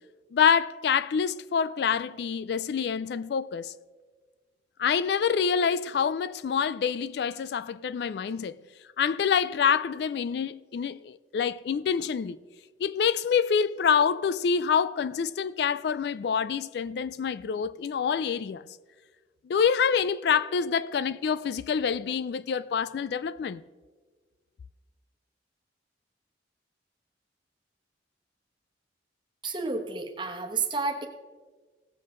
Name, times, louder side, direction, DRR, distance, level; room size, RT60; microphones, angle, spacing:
voice 1, 0.3-3.7 4.8-8.6 9.0-12.4 12.8-18.6 19.5-23.6, left 7 dB, 60° left, 0.3 m, -26 dB
voice 2, 29.4-31.1, right 4 dB, 25° right, 1.2 m, -30 dB
17.5 x 7.4 x 3.8 m
head